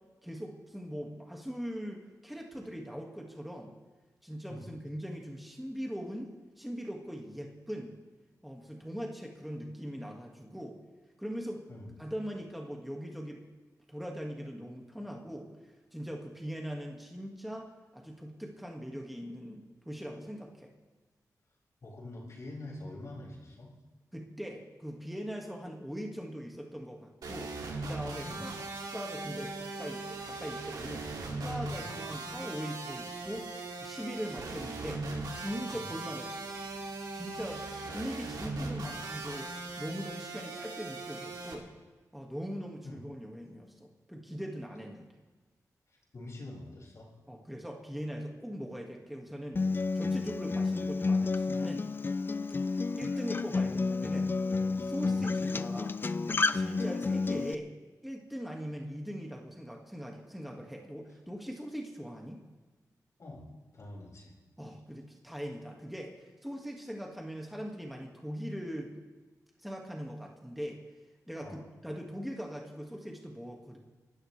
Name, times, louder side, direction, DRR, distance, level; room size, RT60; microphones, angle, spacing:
voice 1, 0.2-3.7 4.2-8.0 8.4-10.8 11.2-11.6 12.0-13.4 13.9-15.5 15.9-20.7 24.1-27.5 27.8-31.1 31.4-33.5 33.8-35.0 35.4-36.3 37.1-41.7 42.1-45.1 47.3-49.6 49.9-51.8 52.7-54.3 54.8-55.9 56.5-57.7 58.0-62.4 64.6-68.9 69.6-70.8 71.3-73.8, equal, ahead, 0 dB, 1.8 m, -41 dB
voice 2, 21.8-23.7 28.2-28.5 31.7-31.9 35.7-35.9 42.8-43.0 45.9-47.1 55.1-55.3 63.2-63.5 63.7-64.4 71.4-71.6, left 1 dB, 55° left, -4 dB, 6.1 m, -45 dB
sound 1, 27.2-41.5, right 3 dB, 85° right, 2.5 m, -39 dB
Acoustic guitar, 49.6-57.5, left 4 dB, 35° left, 0.5 m, -30 dB
29.0 x 13.0 x 3.3 m, 1.3 s
wide cardioid pair, 115°, 6 cm